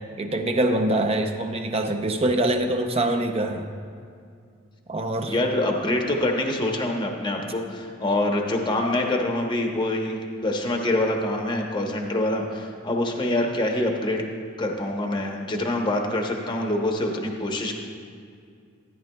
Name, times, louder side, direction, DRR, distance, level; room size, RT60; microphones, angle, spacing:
voice 1, 0.2-3.7 4.9-5.3, right 1 dB, 30° right, 5 dB, 0.6 m, -24 dB
voice 2, 5.3-14.2 14.6-17.7, left 1 dB, 25° left, 1 dB, 0.8 m, -25 dB
13.5 x 10.0 x 2.3 m, 2.2 s
head